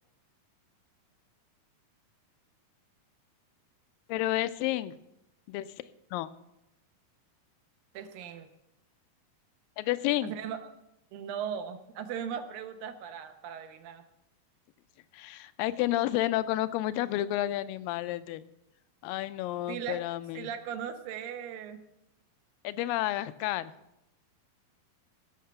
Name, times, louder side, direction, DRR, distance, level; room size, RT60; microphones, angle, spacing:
voice 1, 4.1-5.0 5.5-6.3 9.8-10.3 15.1-18.4 19.0-20.5 22.6-23.7, left 15 dB, 80° left, 15 dB, 2.2 m, -31 dB
voice 2, 7.9-8.5 10.2-10.7 11.1-14.0 19.7-20.0 20.3-21.9, right 8 dB, 80° right, 7 dB, 2.6 m, -38 dB
16.0 x 6.6 x 6.8 m, 0.86 s
omnidirectional pair, 4.1 m